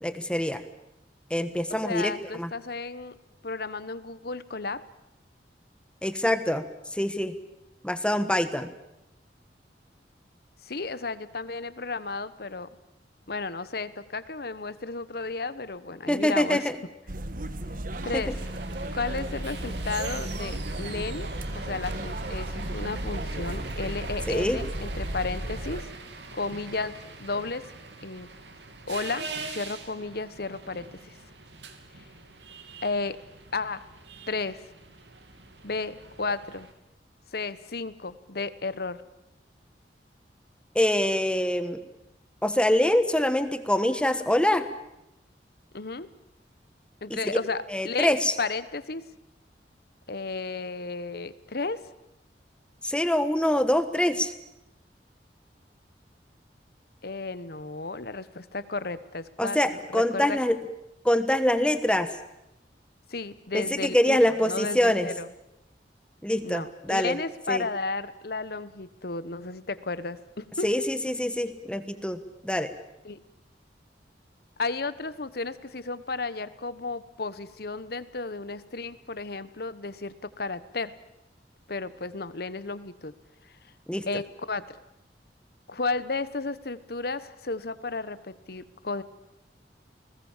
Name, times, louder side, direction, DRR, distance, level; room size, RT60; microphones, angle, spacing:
voice 1, 0.0-0.6 1.3-2.5 6.0-6.6 6.9-7.3 7.8-8.7 16.1-16.7 18.1-18.3 24.3-24.6 40.7-41.8 42.4-44.7 47.1-47.4 47.7-48.3 52.8-54.3 59.4-60.6 61.0-62.1 63.5-65.1 66.2-67.1 67.5-67.6 70.6-72.7 83.9-84.1, left 1 dB, 5° left, 10 dB, 1.3 m, -25 dB
voice 2, 1.8-3.1 3.4-4.8 10.6-12.7 13.3-16.7 18.0-18.3 18.9-25.9 26.3-27.7 28.0-28.3 28.9-31.1 32.8-33.2 33.5-33.8 34.3-34.6 35.6-36.7 37.3-39.0 45.7-46.1 47.0-49.0 50.1-51.8 57.0-59.6 59.9-60.4 63.1-64.2 64.4-65.3 66.4-70.7 73.0-73.2 74.6-80.9 81.7-83.1 84.1-84.6 85.7-89.0, left 3 dB, 60° left, 15 dB, 1.2 m, -33 dB
sound 1, 17.1-25.8, right 1 dB, 55° right, 1.4 m, -34 dB
sound 2, 17.9-36.7, right 4 dB, 85° right, 3.1 m, -43 dB
30.0 x 20.0 x 7.4 m, 0.88 s
head